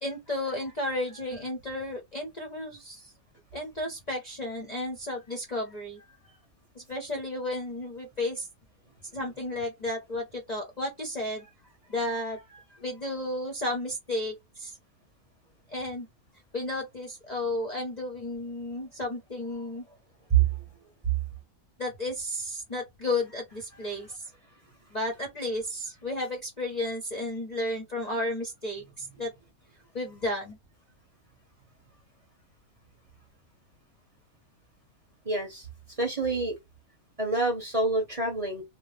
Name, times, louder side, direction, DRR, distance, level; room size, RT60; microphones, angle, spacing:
voice 1, 0.0-3.1 3.5-6.0 6.7-8.5 9.1-11.5 11.9-14.7 15.7-16.1 16.5-19.8 21.8-24.1 24.9-29.3 29.9-30.6, left 1 dB, 35° left, 0.9 m, -33 dB
voice 2, 35.2-35.7 36.0-36.6 37.2-38.6, right 4 dB, 25° right, 1.1 m, -26 dB
3.0 x 2.1 x 3.2 m
omnidirectional pair, 1.5 m